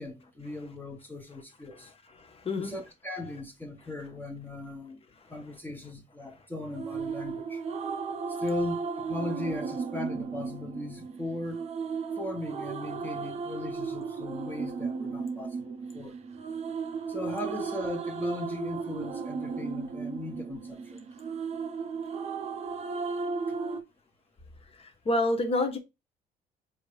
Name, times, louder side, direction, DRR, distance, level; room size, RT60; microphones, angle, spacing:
voice 1, 0.0-1.9 2.6-5.0 5.3-7.6 8.3-11.6 12.2-16.1 17.1-21.0 23.5-23.6, left 2 dB, 10° left, 1.0 m, -38 dB
voice 2, 2.2-2.7 24.7-25.8, left 2 dB, 35° left, 1.2 m, -29 dB
sound 1, 6.7-23.8, right 5 dB, 40° right, 0.6 m, -35 dB
4.4 x 2.8 x 3.3 m
cardioid pair, 110°, 17 cm